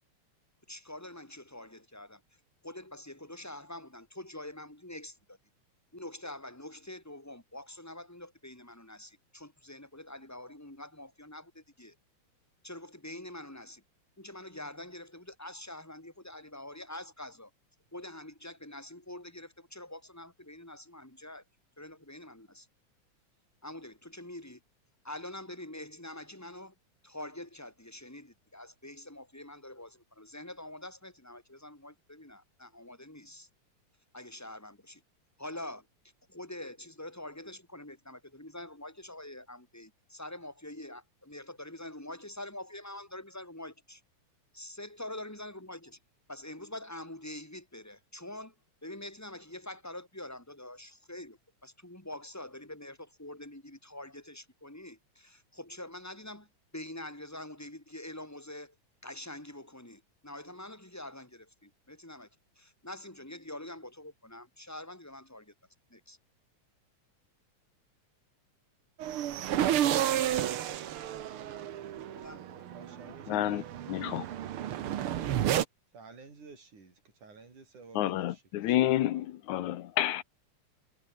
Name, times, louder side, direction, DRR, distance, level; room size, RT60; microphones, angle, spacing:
voice 1, 0.7-2.2 2.6-5.4 5.9-12.0 12.6-13.8 14.2-17.5 17.9-21.4 21.8-22.7 23.6-24.6 25.0-26.7 27.0-33.5 34.1-35.0 35.4-35.9 36.3-44.0 44.5-46.0 46.3-48.6 48.8-56.5 56.7-58.8 59.0-62.3 62.6-65.5 65.9-66.2 72.1-73.2, left 1 dB, 5° left, 3.9 m, -45 dB
sound 1, 69.0-75.6, right 11 dB, 60° right, 1.7 m, -31 dB
voice 2, 72.7-74.1 75.9-78.9, right 4 dB, 85° right, 7.4 m, -52 dB
voice 3, 73.3-73.6 73.9-74.3 78.0-80.2, left 13 dB, 80° left, 2.4 m, -29 dB
omnidirectional pair, 3.4 m